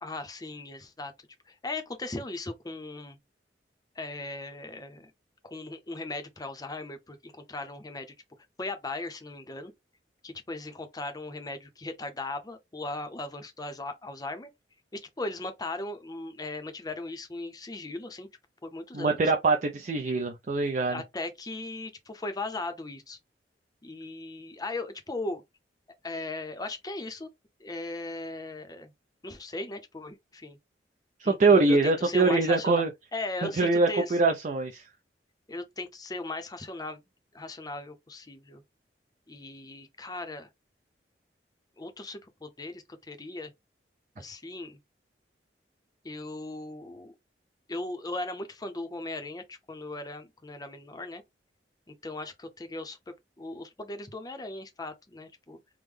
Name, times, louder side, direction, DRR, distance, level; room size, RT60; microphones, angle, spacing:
voice 1, 0.0-1.1 1.5-3.2 4.0-5.1 5.4-8.1 8.6-9.7 10.2-14.5 14.9-18.3 18.6-19.2 20.9-23.2 23.8-25.4 26.0-27.3 27.6-28.9 29.2-30.6 31.2-32.8 33.1-34.2 35.5-37.0 37.3-38.6 39.3-40.5 41.8-43.5 44.2-44.8 46.0-47.1 47.7-51.2 51.9-55.6, left 2 dB, 20° left, 0.6 m, -38 dB
voice 2, 18.9-21.0 31.2-32.9 33.4-34.8, right 3 dB, 45° right, 0.4 m, -23 dB
3.5 x 2.1 x 3.2 m
head